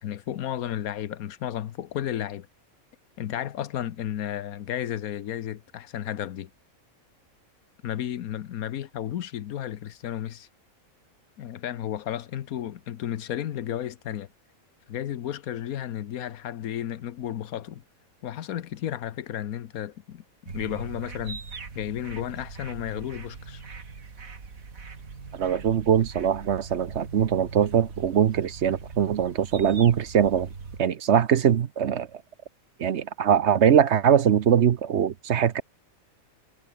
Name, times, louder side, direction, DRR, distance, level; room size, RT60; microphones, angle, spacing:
voice 1, 0.0-2.5 3.2-6.5 7.8-10.5 11.4-14.3 14.9-17.8 18.2-21.4 21.7-23.6, left 11 dB, 85° left, 1.3 m, -33 dB
sound 1, 20.5-30.8, right 4 dB, 75° right, 2.8 m, -41 dB
voice 2, 25.3-30.5 30.8-32.2 32.8-35.6, right 8 dB, 55° right, 1.0 m, -22 dB
omnidirectional pair, 1.5 m